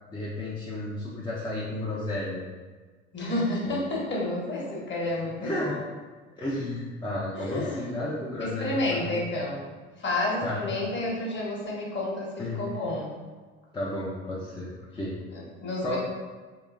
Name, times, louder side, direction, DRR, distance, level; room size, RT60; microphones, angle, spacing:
voice 1, 0.1-2.4 3.6-3.8 5.4-5.8 6.4-9.2 10.4-10.6 12.4-12.6 13.7-15.2 15.8-16.0, left 1 dB, 15° left, -7 dB, 0.7 m, -32 dB
voice 2, 3.1-5.8 7.3-8.1 8.4-13.1 15.3-16.0, left 2 dB, 30° left, -3 dB, 1.2 m, -30 dB
3.8 x 2.8 x 2.5 m, 1.4 s
figure-of-eight pair, 65°, 35 cm